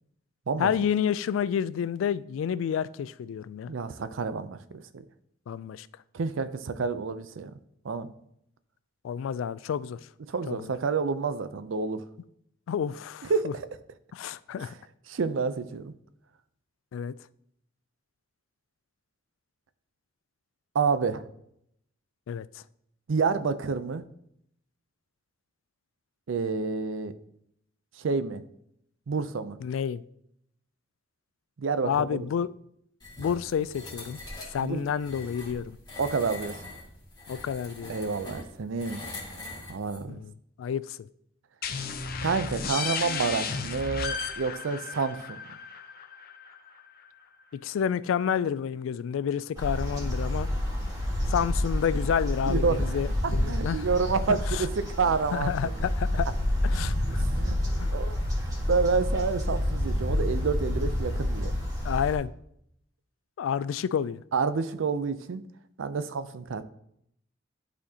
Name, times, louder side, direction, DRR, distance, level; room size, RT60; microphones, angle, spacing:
voice 1, 0.6-3.7 5.5-5.9 9.0-10.0 10.5-10.6 12.7-13.5 14.1-14.7 16.9-17.1 22.3-22.5 29.6-30.0 31.8-32.5 33.2-34.2 34.5-35.8 37.3-37.9 40.1-40.3 40.6-41.1 47.6-50.5 51.3-53.8 54.5-54.7 55.3-56.3 56.6-57.2 57.8-58.0 61.8-62.3 63.4-64.2, left 8 dB, 90° left, 0.3 m, -29 dB
voice 2, 3.7-5.0 6.1-7.6 7.8-8.1 10.3-12.0 13.3-13.7 14.6-14.7 15.1-15.9 20.7-21.2 23.1-24.0 26.3-27.1 28.0-28.4 29.1-29.6 31.6-32.3 34.6-34.9 36.0-36.5 37.9-39.0 39.7-40.2 42.2-45.4 52.5-55.7 57.1-57.6 57.9-61.5 64.3-65.5 65.8-66.6, right 4 dB, 80° right, 0.5 m, -29 dB
sound 1, 33.0-40.0, left 2 dB, 20° left, 2.1 m, -43 dB
sound 2, 41.6-47.1, left 5 dB, 50° left, 0.6 m, -34 dB
sound 3, 49.5-62.1, left 1 dB, 20° right, 1.7 m, -28 dB
11.5 x 4.2 x 2.8 m
head